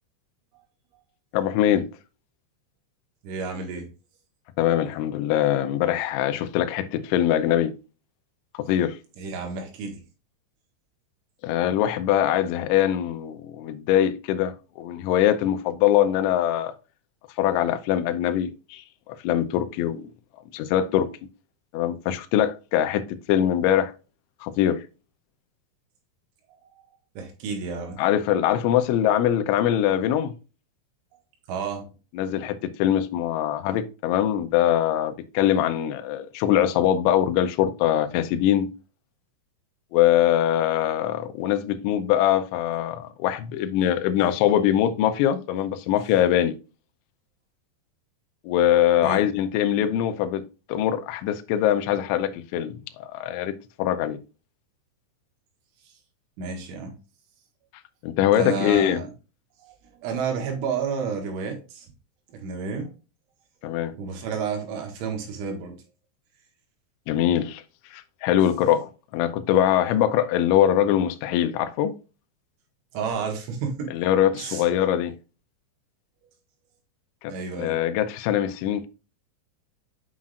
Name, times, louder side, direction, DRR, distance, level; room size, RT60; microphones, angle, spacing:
voice 1, 1.3-1.9 4.6-7.7 8.6-9.0 11.4-14.5 14.8-16.7 17.4-18.8 19.1-20.1 20.5-21.1 21.7-23.9 24.4-24.8 28.0-30.3 32.2-38.7 39.9-46.5 48.4-54.2 58.0-59.0 63.6-63.9 67.1-67.6 67.9-71.9 73.9-75.1 77.2-78.9, left 11 dB, 80° left, 3.1 m, -23 dB
voice 2, 3.2-3.9 9.2-10.0 26.5-26.6 27.2-28.0 31.5-31.9 49.0-49.2 56.4-57.0 58.3-59.1 59.6-61.9 62.3-62.9 64.0-65.8 72.9-73.9 74.3-74.6 77.3-77.8, right 5 dB, 80° right, 4.0 m, -31 dB
8.5 x 5.7 x 2.5 m
omnidirectional pair, 5.5 m